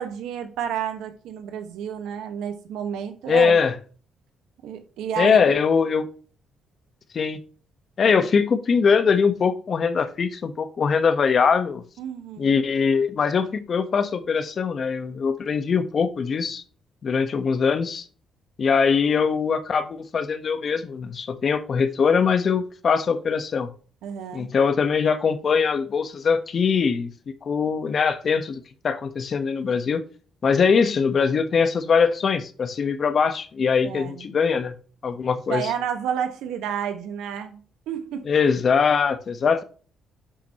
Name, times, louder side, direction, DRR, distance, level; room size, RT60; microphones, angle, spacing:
voice 1, 0.0-3.6 4.6-5.6 12.0-12.6 24.0-24.5 33.8-34.3 35.5-37.6 37.9-38.3, right 8 dB, 90° right, 1.5 m, -30 dB
voice 2, 3.3-3.7 5.2-6.1 7.1-7.4 8.0-11.8 12.4-16.6 17.0-18.1 18.6-23.7 24.3-27.1 27.4-30.0 30.4-34.7 35.0-35.7 38.3-39.6, left 6 dB, 50° left, 1.2 m, -22 dB
9.9 x 5.8 x 3.0 m
cardioid pair, 90°, 0 cm